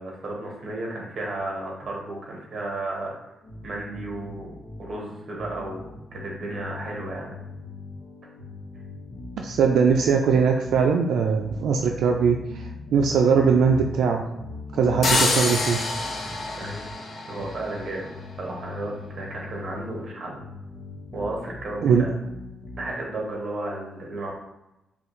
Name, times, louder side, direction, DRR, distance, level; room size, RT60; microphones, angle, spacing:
voice 1, 0.0-3.3 3.6-4.5 4.8-7.4 13.4-13.6 16.6-16.9 17.3-18.1 18.4-20.4 21.1-22.1 22.8-24.3, right 2 dB, 40° right, -2 dB, 1.2 m, -33 dB
sound 1, 3.4-23.3, left 2 dB, 60° left, 1.0 m, -41 dB
voice 2, 9.4-12.6 12.9-14.2 14.7-15.8 21.8-22.0, right 6 dB, 75° right, 2 dB, 0.3 m, -20 dB
sound 2, 15.0-17.9, left 3 dB, 45° left, 0.7 m, -26 dB
5.7 x 2.3 x 3.1 m, 0.92 s
wide cardioid pair, 160°, 0 cm